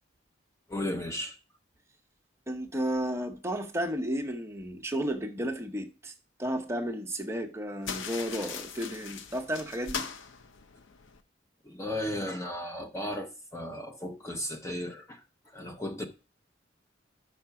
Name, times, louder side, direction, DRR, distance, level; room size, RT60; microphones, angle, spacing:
voice 1, 0.7-1.4 11.6-15.2 15.5-16.0, left 1 dB, 15° left, 0.7 m, -35 dB
voice 2, 2.5-6.1 6.4-10.0, equal, 15° right, 0.8 m, -33 dB
sound 1, 7.8-11.2, left 6 dB, 80° left, 0.7 m, -40 dB
5.9 x 5.8 x 5.7 m
head